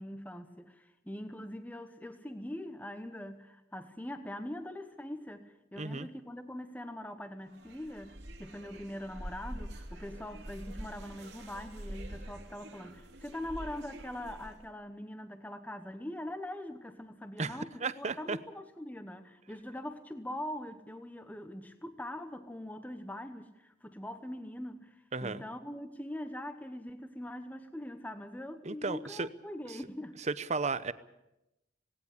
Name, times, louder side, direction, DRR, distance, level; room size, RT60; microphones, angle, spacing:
voice 1, 0.0-30.2, left 1 dB, 10° left, 8 dB, 1.0 m, -42 dB
voice 2, 5.8-6.1 17.4-18.4 25.1-25.4 28.6-29.3 30.3-30.9, right 4 dB, 35° right, 14 dB, 0.8 m, -34 dB
sound 1, 7.5-14.7, right 1 dB, 65° right, 2.6 m, -45 dB
18.5 x 18.0 x 8.4 m, 0.91 s
head